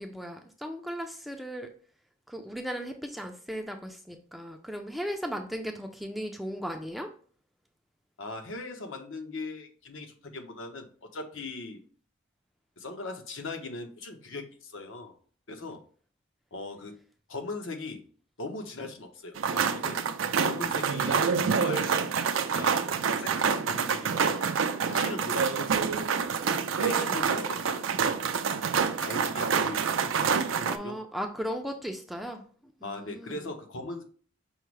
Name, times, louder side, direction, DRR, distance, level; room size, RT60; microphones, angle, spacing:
voice 1, 0.0-1.7 2.3-7.1 30.7-33.5, equal, ahead, 4 dB, 0.4 m, -37 dB
voice 2, 8.2-11.8 12.8-15.2 15.5-15.8 16.5-16.9 17.3-18.0 18.4-20.0 20.4-21.2 21.4-22.0 22.3-22.9 23.2-24.4 24.9-25.7 26.7-28.0 29.0-30.1 30.5-31.0 32.8-34.0, left 2 dB, 75° left, 4 dB, 0.9 m, -39 dB
sound 1, 19.4-30.8, right 6 dB, 80° right, 0.4 m, -27 dB
5.5 x 2.0 x 4.6 m, 0.43 s
head